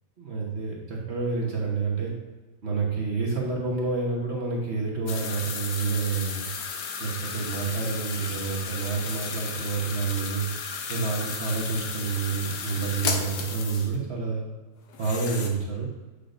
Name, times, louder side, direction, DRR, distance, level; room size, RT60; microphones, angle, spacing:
voice 1, 0.2-2.1 2.6-6.5 7.0-10.4 10.9-14.4 15.0-15.9, right 4 dB, 45° right, -3 dB, 1.3 m, -28 dB
sound 1, 5.1-14.0 14.9-15.5, left 5 dB, 85° left, 1.4 m, -34 dB
8.4 x 6.4 x 2.6 m, 1.2 s
omnidirectional pair, 1.7 m